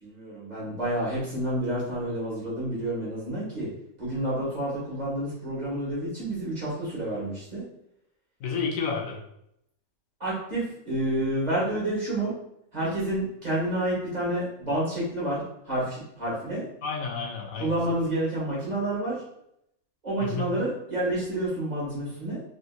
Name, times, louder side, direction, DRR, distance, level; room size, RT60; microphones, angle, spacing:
voice 1, 0.0-3.7 4.0-7.6 10.2-12.3 12.7-16.6 17.6-19.1 20.0-22.4, right 1 dB, 35° right, -8 dB, 1.3 m, -29 dB
voice 2, 8.4-9.2 16.8-17.7 20.2-20.6, left 5 dB, 80° left, 1 dB, 1.0 m, -30 dB
3.5 x 2.7 x 2.3 m, 0.77 s
omnidirectional pair, 1.4 m